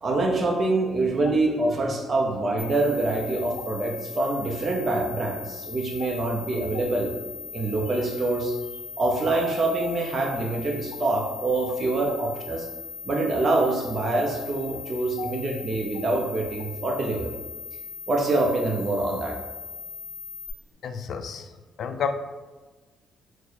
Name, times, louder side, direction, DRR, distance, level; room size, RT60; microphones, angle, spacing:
voice 1, 0.0-7.1 7.5-8.6 9.0-12.7 13.0-17.4 18.1-19.4, right 2 dB, 40° right, 0 dB, 0.6 m, -25 dB
sound 1, 2.6-20.5, left 4 dB, 10° left, 1.0 m, -39 dB
voice 2, 20.8-21.5 21.8-22.1, left 6 dB, 65° left, 8 dB, 0.3 m, -30 dB
4.5 x 2.0 x 4.1 m, 1.3 s
cardioid pair, 90°, 0 cm